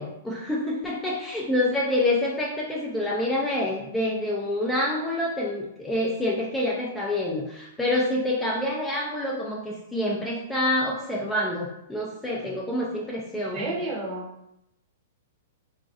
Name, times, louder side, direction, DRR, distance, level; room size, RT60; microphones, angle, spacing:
voice 1, 0.0-13.6, left 1 dB, 10° left, -3 dB, 0.4 m, -27 dB
voice 2, 13.4-14.3, right 2 dB, 30° right, -2 dB, 0.8 m, -31 dB
3.0 x 2.5 x 2.4 m, 0.84 s
hypercardioid pair, 145°, 0 cm